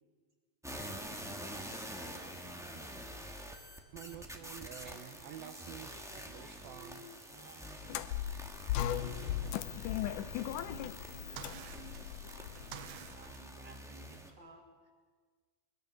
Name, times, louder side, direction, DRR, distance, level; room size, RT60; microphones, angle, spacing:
sound 1, 0.6-14.3, equal, 5° right, 0.6 m, -47 dB
voice 1, 1.5-3.4 4.0-8.0 8.9-14.9, right 4 dB, 35° right, 1 dB, 2.6 m, -57 dB
sound 2, 3.9-7.1 8.7-13.4, right 10 dB, 85° right, 2.9 m, -50 dB
sound 3, 7.8-13.1, left 12 dB, 75° left, 2.0 m, -37 dB
23.5 x 21.0 x 6.7 m, 1.5 s
omnidirectional pair, 4.2 m